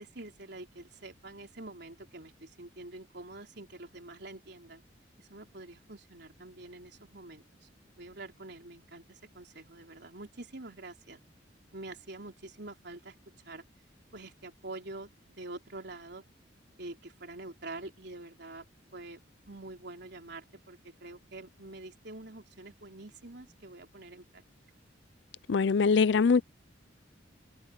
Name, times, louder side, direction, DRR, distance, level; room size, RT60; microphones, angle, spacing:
voice 1, 0.0-4.8 5.2-7.7 8.0-11.2 11.7-13.1 13.4-13.6 14.1-15.1 15.4-16.2 16.8-18.6 18.9-19.2 19.5-24.4, right 2 dB, 60° right, 4.0 m, -46 dB
voice 2, 25.5-26.4, left 5 dB, 65° left, 0.4 m, -23 dB
open air
head